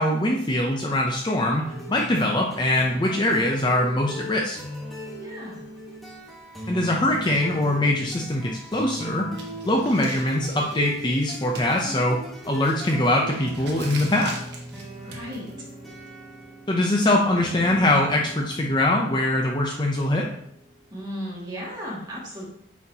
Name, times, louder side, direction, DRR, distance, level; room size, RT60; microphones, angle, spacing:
voice 1, 0.0-4.6 6.7-9.3 9.6-12.2 12.5-14.4 16.7-20.3, left 1 dB, 20° left, 0 dB, 0.5 m, -22 dB
sound 1, 1.6-21.0, right 1 dB, ahead, 1.1 m, -39 dB
voice 2, 5.1-5.7 14.9-15.5 20.9-22.4, equal, 20° right, -5 dB, 2.0 m, -35 dB
sound 2, 9.3-16.5, right 3 dB, 55° right, 1.2 m, -43 dB
8.7 x 4.2 x 2.8 m, 0.71 s
head